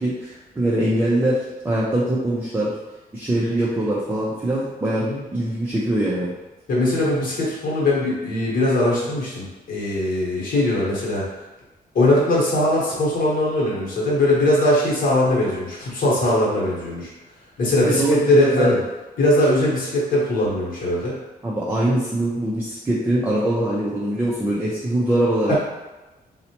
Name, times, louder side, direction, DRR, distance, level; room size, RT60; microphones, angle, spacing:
voice 1, 0.0-1.4 1.6-2.7 3.1-6.3 17.8-18.8 21.4-25.5, right 1 dB, 10° right, -6 dB, 0.4 m, -22 dB
voice 2, 6.7-11.2 11.9-17.1 17.6-18.8 19.2-21.2 25.5-25.6, left 1 dB, 60° left, -5 dB, 1.0 m, -20 dB
4.0 x 2.1 x 2.8 m, 1.1 s
wide cardioid pair, 180°, 16 cm